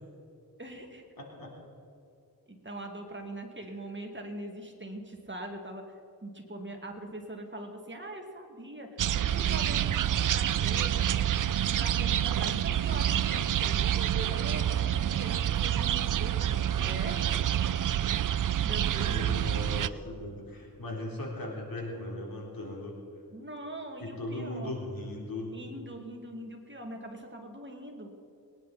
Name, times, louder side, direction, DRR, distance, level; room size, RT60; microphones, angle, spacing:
voice 1, 0.6-1.0 2.5-5.9 6.2-8.9 9.1-11.1 11.5-17.3 18.6-19.7 23.3-24.8 25.5-28.1, right 1 dB, 30° right, 2 dB, 2.3 m, -42 dB
voice 2, 1.2-1.5 19.0-23.0 24.0-25.6, left 1 dB, 65° left, -1 dB, 3.8 m, -38 dB
sound 1, 9.0-19.9, right 10 dB, 55° right, 0.5 m, -28 dB
sound 2, 11.4-13.8, equal, 40° left, 1.7 m, -45 dB
22.5 x 10.5 x 4.3 m, 2.5 s
cardioid pair, 50°, 38 cm